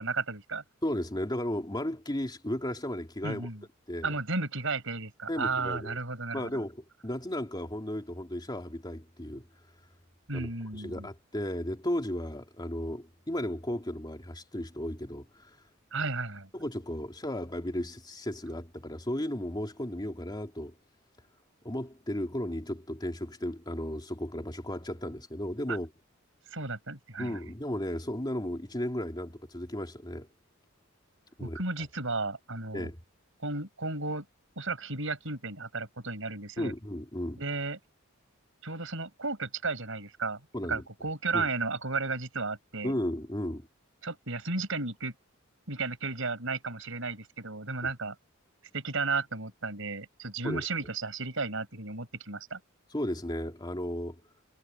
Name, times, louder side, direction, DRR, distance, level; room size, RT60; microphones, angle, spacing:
voice 1, 0.0-0.6 3.2-3.6 4.0-6.6 10.3-11.1 15.9-16.5 25.7-25.8 26.5-27.4 31.4-32.9 33.4-34.3 34.6-36.7 37.4-37.8 38.6-40.4 40.7-42.9 44.0-45.1 45.7-48.1 48.7-52.6, right 3 dB, 65° right, 7.7 m, -34 dB
voice 2, 0.8-3.4 3.9-4.1 5.3-6.0 6.3-9.4 10.3-15.5 16.5-20.7 21.6-25.9 27.2-30.3 31.4-31.6 32.7-33.0 36.6-37.4 40.5-40.8 41.3-41.5 42.8-43.7 50.4-50.6 52.9-54.2, left 1 dB, 20° left, 2.8 m, -34 dB
head